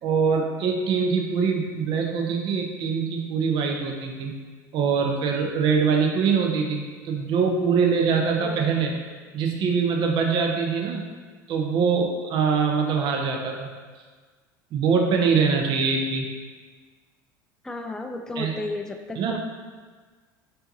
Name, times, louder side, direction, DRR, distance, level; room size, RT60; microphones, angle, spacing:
voice 1, 0.0-4.3 4.7-9.0 9.3-11.0 11.5-13.7 14.7-16.3 18.4-18.5 19.2-19.4, right 5 dB, 50° right, 2 dB, 0.6 m, -23 dB
voice 2, 8.4-8.7 17.6-19.4, left 2 dB, 5° left, 5 dB, 0.3 m, -33 dB
5.5 x 2.7 x 2.7 m, 1.5 s
hypercardioid pair, 80°, 11 cm